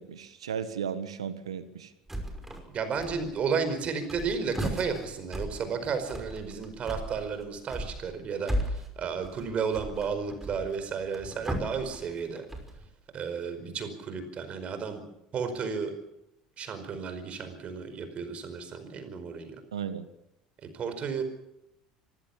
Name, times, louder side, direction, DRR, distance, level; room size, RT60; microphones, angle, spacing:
voice 1, 0.0-1.9 19.7-20.0, right 7 dB, 85° right, 13 dB, 1.4 m, -35 dB
sound 1, 2.1-2.7 2.9-3.6 3.9-12.9, equal, 10° right, 5.5 m, -36 dB
voice 2, 2.7-12.4 13.1-15.0 15.3-16.0 16.6-19.6 20.7-21.2, right 5 dB, 45° right, 9 dB, 4.9 m, -33 dB
25.5 x 16.0 x 7.3 m, 0.85 s
hypercardioid pair, 70°, 3 cm